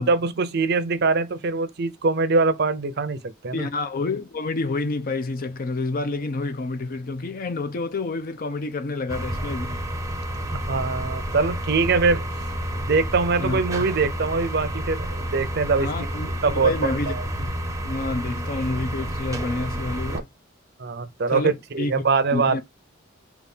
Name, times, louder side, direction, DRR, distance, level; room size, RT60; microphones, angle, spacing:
voice 1, 0.0-3.7 10.5-12.2 12.8-15.9 16.4-17.2 20.1-20.2 20.8-22.6, right 4 dB, 55° right, 0.6 m, -23 dB
voice 2, 3.5-9.9 13.4-13.6 15.8-17.5 17.8-20.3 21.3-21.9 22.3-22.6, left 3 dB, 45° left, 0.5 m, -29 dB
sound 1, 9.1-20.2, equal, 15° right, 0.6 m, -30 dB
4.0 x 2.4 x 3.5 m
head